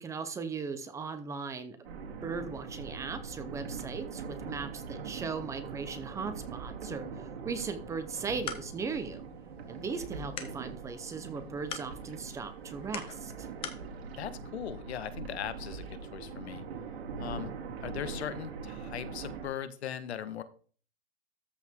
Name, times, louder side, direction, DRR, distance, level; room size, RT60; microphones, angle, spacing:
voice 1, 0.0-9.2 9.7-13.5, right 5 dB, 10° right, 9 dB, 0.6 m, -38 dB
sound 1, 1.8-19.5, right 5 dB, 80° right, 2.4 m, -42 dB
sound 2, 8.0-13.9, left 7 dB, 15° left, 0.9 m, -45 dB
voice 2, 14.2-16.6 17.2-17.5 17.8-20.4, left 9 dB, 90° left, 12 dB, 1.4 m, -39 dB
13.5 x 4.8 x 3.6 m, 0.41 s
supercardioid pair, 160°, 32 cm